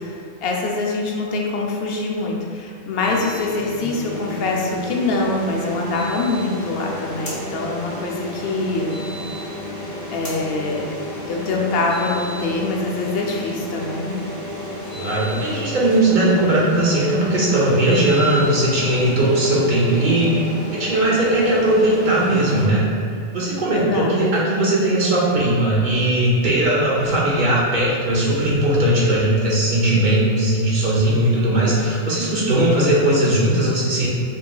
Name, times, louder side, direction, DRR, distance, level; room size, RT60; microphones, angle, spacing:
voice 1, 0.0-9.0 10.1-10.9 11.3-14.2 23.7-24.3, left 3 dB, 65° left, -1 dB, 0.7 m, -24 dB
sound 1, 3.0-22.7, left 1 dB, 25° left, 0.4 m, -32 dB
voice 2, 14.9-22.8 23.3-34.1, right 1 dB, 50° right, -6 dB, 0.8 m, -18 dB
5.2 x 2.7 x 2.2 m, 2.3 s
omnidirectional pair, 1.2 m